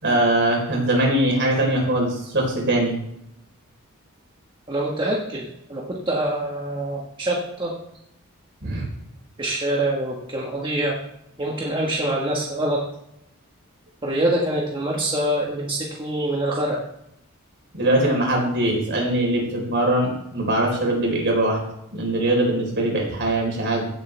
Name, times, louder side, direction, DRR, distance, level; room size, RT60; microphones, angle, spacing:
voice 1, 0.0-3.0 8.6-8.9 17.7-21.6 21.9-23.9, right 1 dB, 55° right, 0 dB, 4.2 m, -21 dB
voice 2, 4.7-7.7 9.4-10.9 11.4-12.8 14.0-16.8, right 1 dB, 25° right, -3 dB, 1.5 m, -25 dB
16.5 x 8.1 x 3.4 m, 0.78 s
head